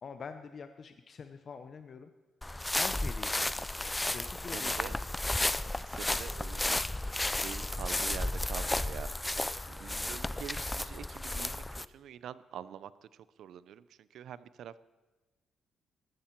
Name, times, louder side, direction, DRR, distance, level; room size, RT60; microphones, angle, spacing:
voice 1, 0.0-2.1 2.7-3.7 4.1-5.1, left 5 dB, 50° left, 8 dB, 0.7 m, -45 dB
sound 1, 2.4-11.8, left 1 dB, 10° left, 0.4 m, -33 dB
voice 2, 4.5-4.9 5.8-9.1 9.7-14.8, right 9 dB, 70° right, 16 dB, 0.5 m, -46 dB
14.5 x 13.0 x 4.5 m, 1.2 s
cardioid pair, 90°, 0 cm